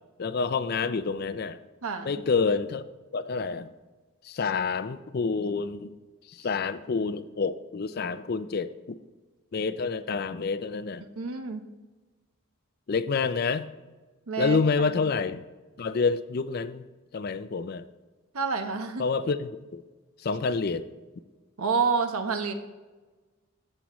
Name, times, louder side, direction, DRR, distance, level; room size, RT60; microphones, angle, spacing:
voice 1, 0.2-1.6 2.0-2.9 3.1-3.7 4.2-5.9 6.3-9.0 9.5-11.0 12.9-13.7 14.4-15.4 15.8-16.8 17.1-17.8 19.0-19.8 20.2-20.9, left 4 dB, 45° left, 14 dB, 0.4 m, -28 dB
voice 2, 1.8-2.2 11.2-11.7 14.3-14.6 14.9-15.0 18.3-19.0 21.6-22.5, right 5 dB, 80° right, 7 dB, 1.0 m, -28 dB
13.0 x 8.4 x 3.1 m, 1.3 s
head